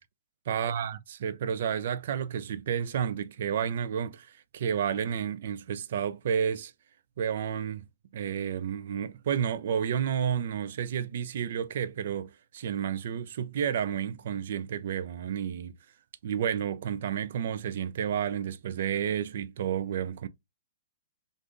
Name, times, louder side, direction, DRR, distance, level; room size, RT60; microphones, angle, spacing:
voice 1, 0.5-6.7 7.2-7.8 8.1-15.8 16.2-20.3, right 8 dB, 60° right, 0.3 m, -31 dB
3.5 x 2.5 x 2.5 m
hypercardioid pair, 150°, 0 cm